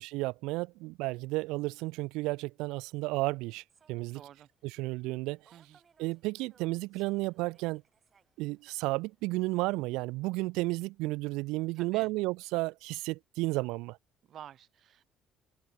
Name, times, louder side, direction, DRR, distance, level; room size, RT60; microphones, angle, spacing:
voice 1, 0.0-3.6 3.9-4.2 4.6-5.4 6.0-7.8 8.4-14.0, right 22 dB, 85° right, 0.5 m, -32 dB
Human voice / Subway metro underground, 3.7-9.4, right 6 dB, 25° right, 7.1 m, -68 dB
voice 2, 4.1-4.5 5.5-5.8 11.7-12.1 14.2-15.0, right 10 dB, 45° right, 4.6 m, -50 dB
cardioid pair, 155°, 0 cm